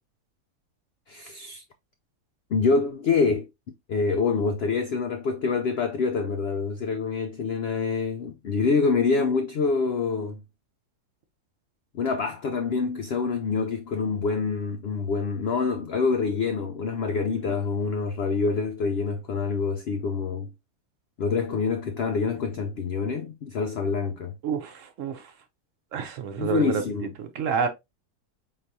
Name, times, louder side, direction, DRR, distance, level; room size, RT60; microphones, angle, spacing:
voice 1, 1.1-1.6 2.5-3.5 3.9-10.4 11.9-20.5 21.2-24.4 26.4-27.1, left 4 dB, 90° left, 0.5 m, -26 dB
voice 2, 24.4-25.2 25.9-26.8 27.2-27.7, right 6 dB, 60° right, 0.9 m, -28 dB
4.6 x 3.8 x 2.6 m
omnidirectional pair, 1.7 m